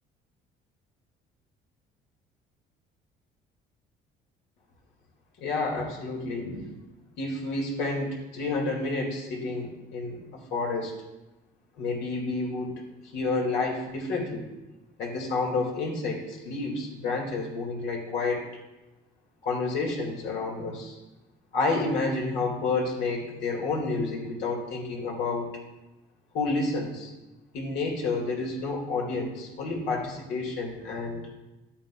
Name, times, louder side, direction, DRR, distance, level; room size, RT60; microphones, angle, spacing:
voice 1, 5.4-6.6 7.2-11.0 11.8-12.9 13.1-14.5 15.0-18.4 19.4-21.0 21.5-25.5 26.3-27.1 27.5-31.3, left 3 dB, 80° left, -1 dB, 2.4 m, -30 dB
12.0 x 8.7 x 2.4 m, 1.0 s
cardioid pair, 110°, 18 cm